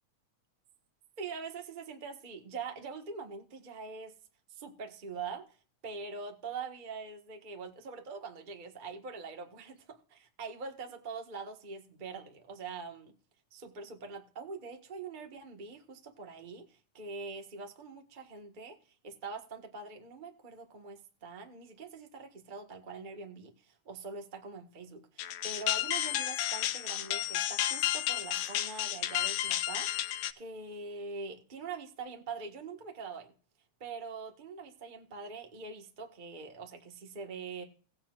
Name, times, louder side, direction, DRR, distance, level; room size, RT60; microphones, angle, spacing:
voice 1, 1.2-4.1 4.5-5.6 5.8-13.1 13.5-18.8 19.0-33.3 33.8-37.6, right 4 dB, 40° right, 4 dB, 0.6 m, -43 dB
sound 1, 25.2-30.3, left 13 dB, 90° left, 2.1 m, -32 dB
18.0 x 8.6 x 2.4 m, 0.38 s
omnidirectional pair, 3.4 m